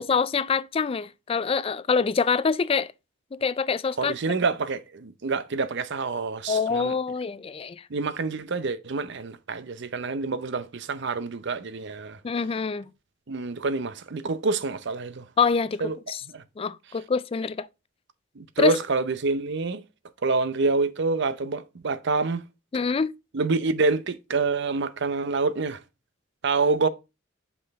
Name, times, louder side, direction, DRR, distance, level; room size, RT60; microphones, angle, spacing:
voice 1, 0.0-2.9 3.3-4.1 6.5-7.8 12.2-12.9 15.4-15.8 16.1-16.2 16.6-17.7 18.6-18.8 22.7-23.1, left 5 dB, 30° left, 0.3 m, -25 dB
voice 2, 4.0-7.0 7.9-12.2 13.3-15.3 15.8-16.0 16.3-16.4 18.4-19.8 20.2-22.4 23.3-25.8 26.4-26.9, right 3 dB, 60° right, 0.7 m, -27 dB
6.1 x 5.5 x 3.5 m
head